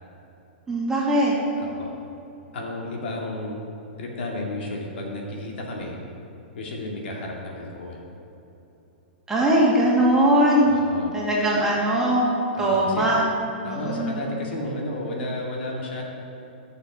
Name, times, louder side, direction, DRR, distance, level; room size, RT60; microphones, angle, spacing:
voice 1, 0.7-1.3 9.3-10.7 11.1-12.3 12.6-13.2 13.6-14.2, right 1 dB, 10° right, -6 dB, 2.3 m, -20 dB
voice 2, 1.6-2.0 2.5-3.6 4.0-6.0 6.5-8.0 10.7-11.1 12.5-13.1 13.6-16.0, left 1 dB, 70° left, -1 dB, 2.4 m, -32 dB
14.0 x 6.8 x 5.3 m, 3.0 s
hypercardioid pair, 150°, 6 cm